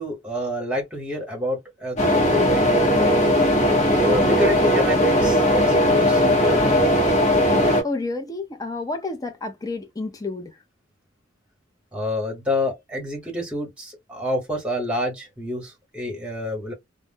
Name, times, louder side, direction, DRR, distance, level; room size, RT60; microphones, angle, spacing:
voice 1, 0.0-3.1 4.0-6.9 11.9-16.7, left 1 dB, 5° right, 1.2 m, -28 dB
sound 1, 2.0-7.8, left 1 dB, 35° left, 0.8 m, -18 dB
voice 2, 7.8-10.5, left 3 dB, 20° left, 0.5 m, -30 dB
2.4 x 2.0 x 3.4 m
head